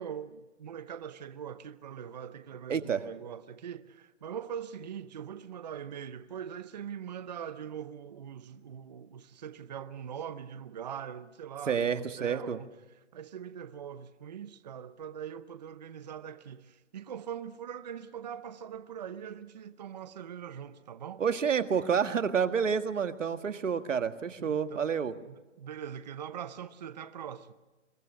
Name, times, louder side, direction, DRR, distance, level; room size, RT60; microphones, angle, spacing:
voice 1, 0.0-12.7 13.1-21.2 24.4-24.9 25.2-27.5, right 8 dB, 35° right, 0.7 m, -42 dB
voice 2, 2.7-3.0 11.7-12.6 21.2-25.1, right 7 dB, 90° right, 1.8 m, -29 dB
26.0 x 23.0 x 6.4 m
hypercardioid pair, 165°, 36 cm